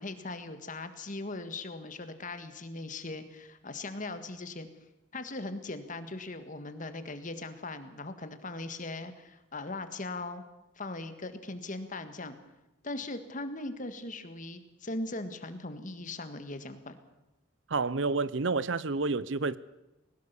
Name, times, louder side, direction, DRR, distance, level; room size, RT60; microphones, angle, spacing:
voice 1, 0.0-4.7 5.1-10.4 10.8-12.4 12.8-17.0, left 2 dB, 40° left, 1.7 m, -39 dB
voice 2, 17.7-19.6, right 3 dB, 65° right, 0.7 m, -29 dB
21.0 x 18.5 x 6.9 m
head